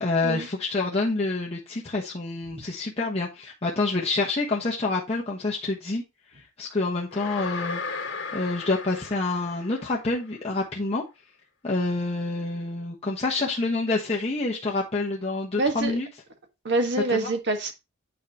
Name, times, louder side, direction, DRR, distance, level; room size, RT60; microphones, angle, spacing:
voice 1, 0.0-6.0 6.6-7.8 8.3-11.0 11.6-16.1 17.1-17.3, left 3 dB, 30° left, 1.2 m, -27 dB
sound 1, 7.1-10.2, left 4 dB, 65° left, 1.7 m, -35 dB
voice 2, 15.6-15.9 16.6-17.7, right 2 dB, 55° right, 1.6 m, -25 dB
9.4 x 4.8 x 2.9 m
head